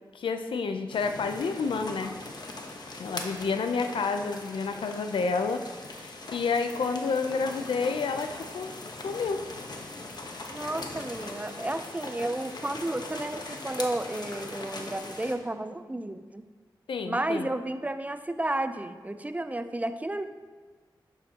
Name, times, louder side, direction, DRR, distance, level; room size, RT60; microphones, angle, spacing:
voice 1, 0.1-2.1 3.0-5.6 6.0-8.7 9.0-9.4 16.9-17.5, left 4 dB, 85° left, 7 dB, 0.6 m, -29 dB
sound 1, 0.9-15.3, left 2 dB, 55° left, 1.2 m, -40 dB
voice 2, 10.5-16.4 17.1-20.2, right 1 dB, 20° right, 10 dB, 0.5 m, -32 dB
11.5 x 7.7 x 2.9 m, 1.4 s
cardioid pair, 65°, 8 cm